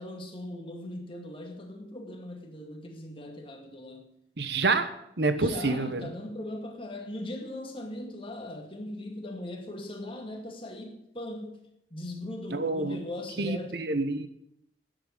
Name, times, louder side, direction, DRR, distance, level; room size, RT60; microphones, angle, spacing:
voice 1, 0.0-4.1 5.4-14.0, left 1 dB, 30° left, 2.1 m, -39 dB
voice 2, 4.4-6.1 12.5-13.0 13.4-14.3, right 3 dB, 60° right, 1.2 m, -28 dB
10.5 x 7.9 x 9.5 m
head